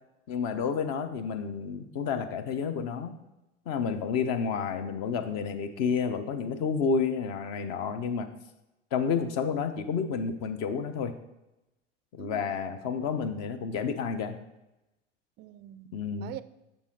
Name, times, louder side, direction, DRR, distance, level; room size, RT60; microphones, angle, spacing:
voice 1, 0.3-3.2 3.7-8.3 8.9-11.1 12.1-14.3 15.9-16.4, left 6 dB, 45° left, 0.9 m, -30 dB
voice 2, 12.2-12.6 15.4-16.4, right 14 dB, 30° right, 0.4 m, -44 dB
7.1 x 6.5 x 3.9 m
figure-of-eight pair, 80°, 36 cm